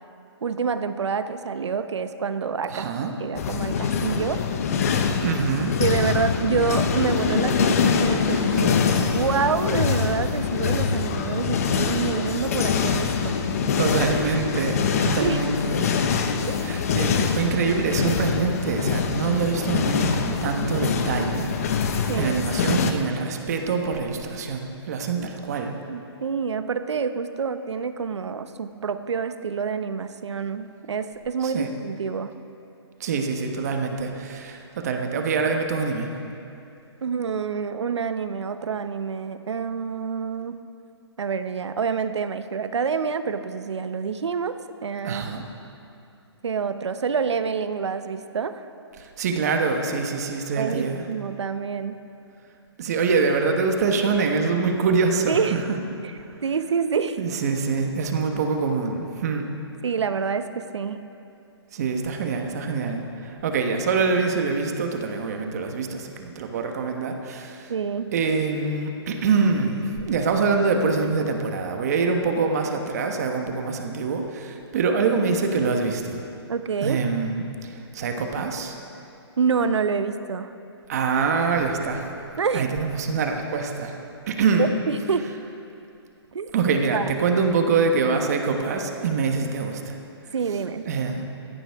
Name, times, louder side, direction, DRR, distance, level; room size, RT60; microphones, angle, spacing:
voice 1, 0.4-2.9 3.2-4.4 5.8-8.7 9.0-13.4 15.2-15.4 16.5-16.6 22.1-22.4 25.2-25.3 25.9-32.3 37.0-40.6 41.2-44.6 44.8-45.2 46.4-48.7 50.6-52.0 55.3-55.6 56.0-56.1 56.4-57.2 59.8-61.0 67.7-68.1 76.5-77.0 79.4-80.5 82.4-82.7 84.6-85.3 86.3-86.5 86.9-87.0 90.3-90.9, right 6 dB, 80° right, 10 dB, 0.8 m, -27 dB
voice 2, 2.7-3.1 5.2-5.8 8.4-8.7 13.8-15.9 16.6-25.7 31.4-31.7 33.0-36.1 45.0-45.4 49.0-51.0 52.8-55.6 56.2-56.4 57.2-59.5 61.7-67.7 68.1-76.3 76.8-78.7 80.9-82.1 82.5-84.0 84.3-84.7 86.5-90.0 90.5-91.2, right 4 dB, 35° right, 4 dB, 1.2 m, -25 dB
sound 1, 3.4-22.9, left 6 dB, 35° left, 0.7 m, -24 dB
17.0 x 14.0 x 3.6 m, 2.7 s
hypercardioid pair, 165°, 14 cm